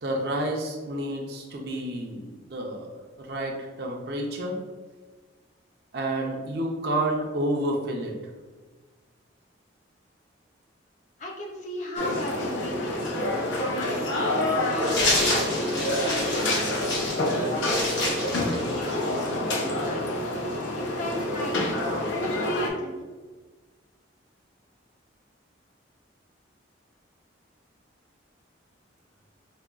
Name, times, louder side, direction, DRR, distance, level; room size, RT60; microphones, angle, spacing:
voice 1, 0.0-2.9 3.2-4.6 5.9-8.1, right 1 dB, 55° right, 0 dB, 0.5 m, -29 dB
voice 2, 11.2-13.2 13.8-16.6 16.9-20.0 20.8-23.0, left 1 dB, 40° left, -1 dB, 0.5 m, -38 dB
sound 1, 12.0-22.7, left 1 dB, 80° left, 0.6 m, -27 dB
sound 2, 14.8-19.2, left 2 dB, 60° left, 1.1 m, -28 dB
4.9 x 2.3 x 2.3 m, 1.3 s
head